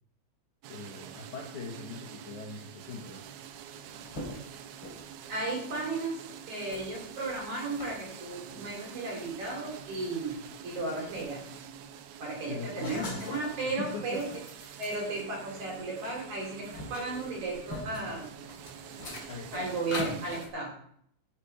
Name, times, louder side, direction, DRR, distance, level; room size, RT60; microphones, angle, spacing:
sound 1, 0.6-20.5, right 9 dB, 75° right, 3.0 m, -47 dB
voice 1, 0.7-3.2 12.5-13.3 13.6-14.3 19.3-19.7, left 4 dB, 85° left, 0 dB, 1.7 m, -40 dB
sound 2, 3.5-5.5 6.0-6.2 6.7-7.9 8.5-8.7 9.3-9.4 9.7-11.6 11.9-13.5 13.9-16.1 16.4-20.5, left 2 dB, 25° left, 3.1 m, -44 dB
voice 2, 5.3-6.2 6.5-11.4 12.2-14.3 14.8-18.3 19.5-20.7, right 3 dB, 45° right, -1 dB, 3.5 m, -35 dB
15.0 x 7.0 x 4.4 m, 0.67 s
omnidirectional pair, 5.8 m